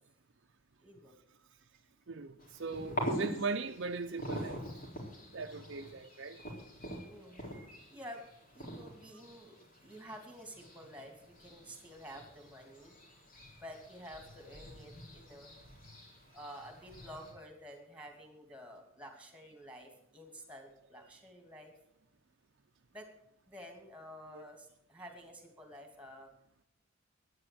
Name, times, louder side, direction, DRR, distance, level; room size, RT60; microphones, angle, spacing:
voice 1, 0.8-1.1 7.1-8.2 8.5-11.1 11.4-13.0 13.6-15.5 16.3-21.7 22.9-23.1 23.5-26.3, equal, 5° right, 2.7 m, -50 dB
voice 2, 2.1-4.6 5.3-6.4 24.3-24.4, right 4 dB, 55° right, 0.6 m, -39 dB
sound 1, 2.4-17.3, equal, 40° left, 4.0 m, -45 dB
12.5 x 9.8 x 7.8 m
head